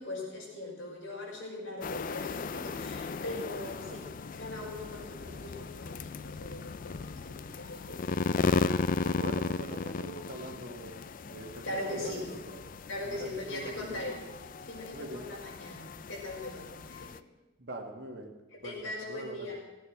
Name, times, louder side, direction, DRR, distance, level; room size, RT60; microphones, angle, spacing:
voice 1, 0.0-4.0 4.4-8.1 11.6-12.3 12.9-14.2 14.7-17.1 18.5-19.6, left 2 dB, 65° left, -4 dB, 5.8 m, -40 dB
sound 1, 1.8-17.2, left 4 dB, 40° left, 0.4 m, -36 dB
voice 2, 3.6-4.0 8.0-8.6 9.0-12.6 13.0-14.1 14.9-15.3 17.6-18.3 18.6-19.5, right 1 dB, 55° right, 2 dB, 2.1 m, -43 dB
16.5 x 9.2 x 6.6 m, 1.1 s
head